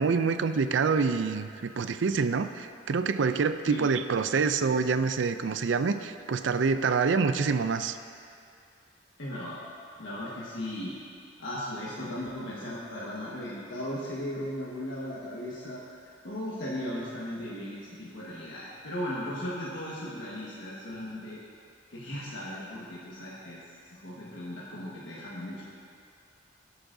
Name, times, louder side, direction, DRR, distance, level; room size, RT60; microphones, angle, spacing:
voice 1, 0.0-8.0, right 5 dB, 85° right, 10 dB, 0.4 m, -26 dB
voice 2, 9.2-9.6 10.0-10.9 11.4-15.8 16.2-21.4 21.9-23.6 23.9-25.6, left 1 dB, 85° left, -7 dB, 1.6 m, -37 dB
17.5 x 8.1 x 2.7 m, 2.4 s
head